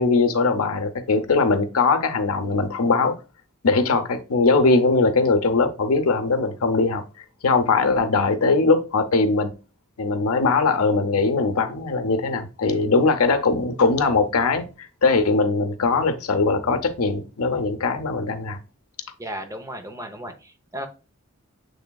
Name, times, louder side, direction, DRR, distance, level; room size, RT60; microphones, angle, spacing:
voice 1, 0.0-3.1 3.6-7.0 7.4-9.5 10.0-18.6, left 3 dB, 80° left, 0.7 m, -20 dB
voice 2, 19.2-20.9, equal, 15° right, 0.6 m, -35 dB
7.0 x 3.3 x 2.2 m
head